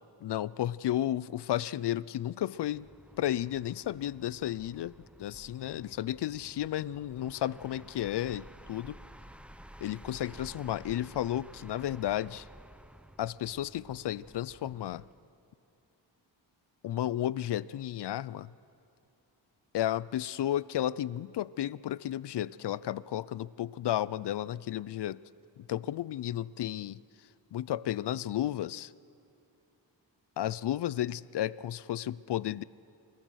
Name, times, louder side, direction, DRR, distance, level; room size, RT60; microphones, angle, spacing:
voice 1, 0.2-2.9 3.2-4.9 5.2-8.9 9.8-12.4 13.2-15.0 16.8-18.5 19.7-25.2 25.6-27.0 27.5-28.9 30.4-32.6, left 12 dB, 65° left, 20 dB, 0.5 m, -33 dB
sound 1, 2.6-15.2, right 1 dB, 5° right, 0.7 m, -53 dB
29.5 x 14.5 x 6.4 m, 2.7 s
cardioid pair, 85°, 45 cm